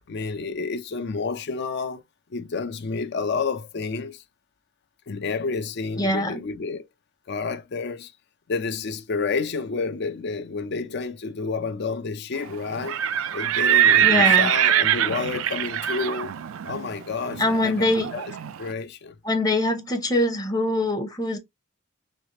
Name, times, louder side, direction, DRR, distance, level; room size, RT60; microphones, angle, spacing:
voice 1, 0.0-2.0 2.3-4.2 5.1-6.9 7.3-8.1 8.5-13.0 13.3-16.3 16.6-18.3 18.6-19.1, left 4 dB, 55° left, 0.5 m, -30 dB
voice 2, 6.0-6.4 14.0-14.5 17.4-18.1 19.2-21.4, left 1 dB, 20° left, 0.7 m, -23 dB
Livestock farm animals working animals, 12.7-18.6, right 10 dB, 75° right, 0.4 m, -22 dB
3.3 x 3.1 x 2.8 m
head